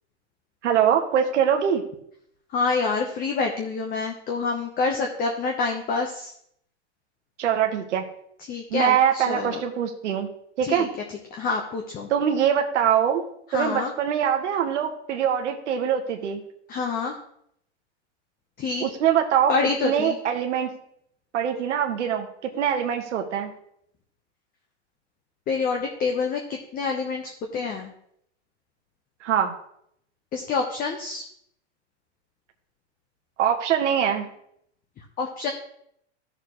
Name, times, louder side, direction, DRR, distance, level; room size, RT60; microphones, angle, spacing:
voice 1, 0.6-1.8 7.4-8.0 8.7-10.3 10.6-10.9 12.1-13.2 13.5-16.4 18.8-19.5 19.8-20.7 21.3-23.5 29.2-29.5 33.4-34.3, right 9 dB, 80° right, 4 dB, 1.3 m, -23 dB
voice 2, 2.5-6.3 8.5-9.6 10.6-10.9 11.3-12.1 13.5-13.9 16.7-17.2 18.6-18.9 19.5-20.2 25.5-27.9 30.3-31.2 35.0-35.5, left 4 dB, 25° left, 2 dB, 1.0 m, -27 dB
14.0 x 6.7 x 3.1 m, 0.71 s
hypercardioid pair, 130°, 35 cm